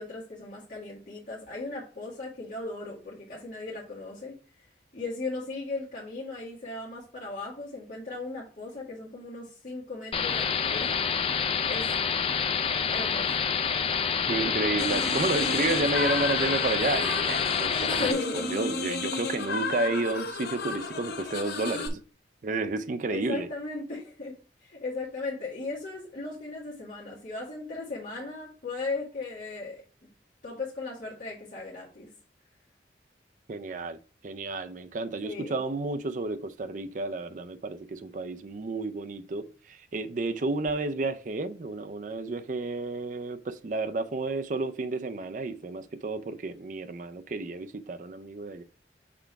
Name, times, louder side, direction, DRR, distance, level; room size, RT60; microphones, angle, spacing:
voice 1, 0.0-4.3 4.9-11.0 11.7-11.9 12.9-13.5 17.9-18.7 23.1-29.8 30.4-32.1 35.2-35.6, left 3 dB, 50° left, 1.8 m, -37 dB
sound 1, 10.1-18.1, left 6 dB, 35° left, 0.4 m, -27 dB
voice 2, 14.2-22.0 22.4-23.5 33.5-48.6, right 3 dB, 45° right, 0.4 m, -31 dB
sound 2, 14.8-21.9, left 4 dB, 65° left, 0.8 m, -33 dB
6.0 x 3.4 x 4.6 m
head